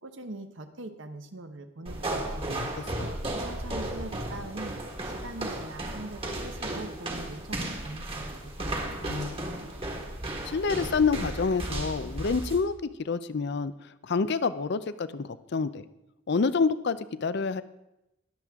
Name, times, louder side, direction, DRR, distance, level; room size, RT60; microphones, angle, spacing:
voice 1, 0.0-2.4 3.0-9.2, right 2 dB, 60° right, 8 dB, 1.0 m, -42 dB
sound 1, 1.9-12.6, right 1 dB, 25° right, 1.6 m, -34 dB
voice 2, 9.1-9.7 10.4-12.7 13.0-13.7 14.0-15.8 16.3-17.6, left 4 dB, 50° left, 14 dB, 0.5 m, -28 dB
21.0 x 7.5 x 3.6 m, 0.90 s
head